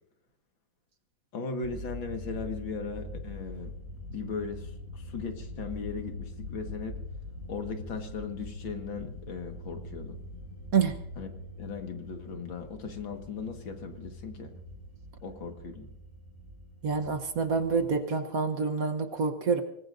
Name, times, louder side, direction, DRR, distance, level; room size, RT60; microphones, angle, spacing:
voice 1, 1.3-3.7 4.1-7.0 7.5-10.2 11.2-11.3 11.6-14.5 15.2-15.9, left 5 dB, 85° left, 5 dB, 2.5 m, -38 dB
sound 1, 1.6-18.0, left 1 dB, 35° right, 3.0 m, -43 dB
voice 2, 16.8-19.6, right 5 dB, 55° right, 8 dB, 1.4 m, -27 dB
25.0 x 19.5 x 2.6 m, 0.76 s
omnidirectional pair, 2.1 m